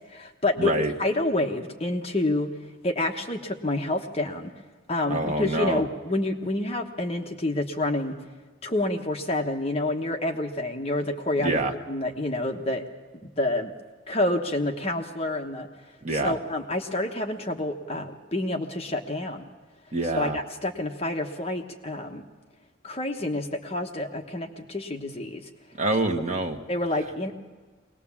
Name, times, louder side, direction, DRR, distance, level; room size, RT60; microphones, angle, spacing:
voice 1, 0.1-0.7 1.0-2.5 2.8-4.5 4.9-8.2 8.6-12.8 13.2-13.7 14.1-15.7 16.1-19.5 20.1-22.2 22.8-25.5 26.7-27.3, left 2 dB, 30° left, 3 dB, 1.2 m, -28 dB
voice 2, 0.6-0.9 5.1-5.8 11.4-11.7 16.0-16.3 19.9-20.4 25.8-26.6, right 2 dB, 35° right, 3 dB, 1.5 m, -26 dB
22.5 x 19.0 x 7.3 m, 1.4 s
head